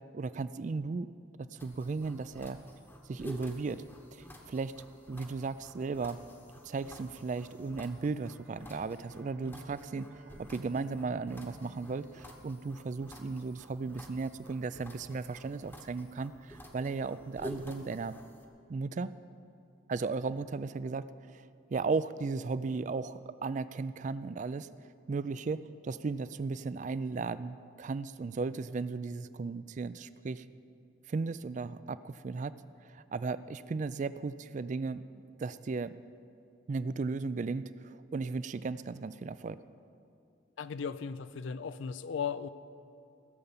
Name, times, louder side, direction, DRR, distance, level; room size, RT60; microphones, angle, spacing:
voice 1, 0.1-1.1 1.5-2.6 3.1-3.8 4.1-4.7 5.1-6.2 6.6-18.2 18.7-19.1 19.9-21.5 21.7-24.7 25.1-30.4 31.1-32.5 32.9-35.0 35.4-35.9 36.7-39.6, right 4 dB, 40° right, 15 dB, 0.3 m, -35 dB
sound 1, 1.6-18.5, left 1 dB, 10° left, 0.9 m, -50 dB
Bowed string instrument, 8.1-13.3, right 1 dB, 90° right, 1.5 m, -55 dB
voice 2, 40.6-42.5, left 6 dB, 75° left, 13 dB, 0.4 m, -36 dB
15.5 x 6.8 x 7.2 m, 2.6 s
head